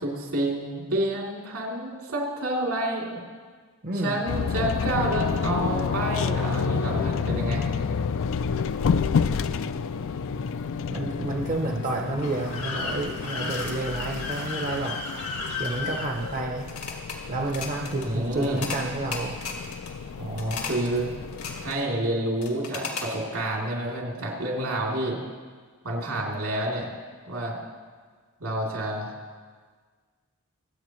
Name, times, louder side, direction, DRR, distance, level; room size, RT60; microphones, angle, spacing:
voice 1, 0.0-3.2 3.9-7.6 18.0-18.6 20.2-21.1 21.6-25.2 25.8-26.9 27.3-27.6 28.4-29.1, right 1 dB, 80° right, -2 dB, 3.0 m, -29 dB
voice 2, 3.8-4.2 7.4-7.7 10.9-15.0 15.6-16.7 17.3-19.4, right 2 dB, 40° right, 1 dB, 0.7 m, -30 dB
sound 1, 4.3-21.7, left 5 dB, 60° left, 0.4 m, -30 dB
sound 2, 12.2-17.2 17.4-18.1 18.4-18.8 19.1-19.9 20.4-20.9 21.2-21.8 22.4-23.1, left 4 dB, 80° left, 2.0 m, -34 dB
24.5 x 8.5 x 3.1 m, 1.5 s
head